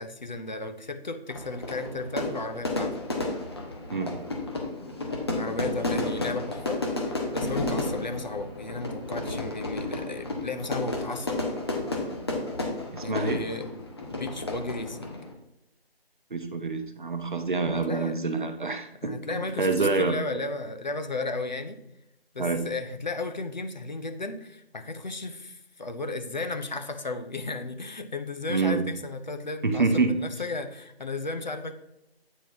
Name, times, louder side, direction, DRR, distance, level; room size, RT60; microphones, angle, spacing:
voice 1, 0.0-3.0 5.4-11.4 13.0-13.7 14.1-15.2 17.7-18.1 19.0-21.8 22.3-31.7, left 3 dB, 45° left, 7 dB, 0.7 m, -34 dB
Fire / Fireworks, 1.3-15.3, left 2 dB, 25° left, 0.9 m, -32 dB
voice 2, 12.9-13.4 16.3-20.2 22.4-22.6 28.5-28.9 29.6-30.2, right 4 dB, 50° right, 6 dB, 0.9 m, -27 dB
9.0 x 4.5 x 3.5 m, 0.87 s
figure-of-eight pair, 165°, 31 cm